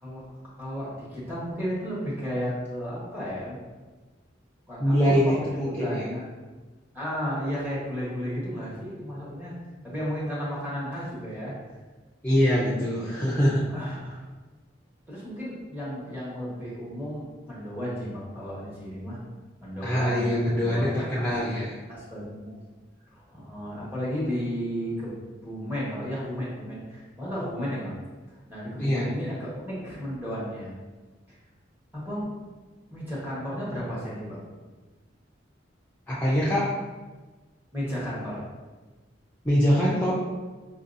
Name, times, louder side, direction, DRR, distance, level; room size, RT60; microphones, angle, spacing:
voice 1, 0.6-3.6 4.7-6.2 6.9-9.5 9.8-11.5 13.7-14.2 15.1-19.2 19.6-21.3 21.9-22.5 23.1-25.2 25.4-28.0 28.5-30.8 31.3-31.4 31.9-32.3 32.9-34.5 37.7-38.4, equal, 10° right, -8 dB, 1.3 m, -33 dB
voice 2, 4.8-6.1 12.2-13.6 19.8-21.7 28.8-29.1 36.1-36.7 39.4-40.1, equal, 10° left, -9 dB, 0.6 m, -23 dB
5.3 x 2.7 x 2.6 m, 1.3 s
head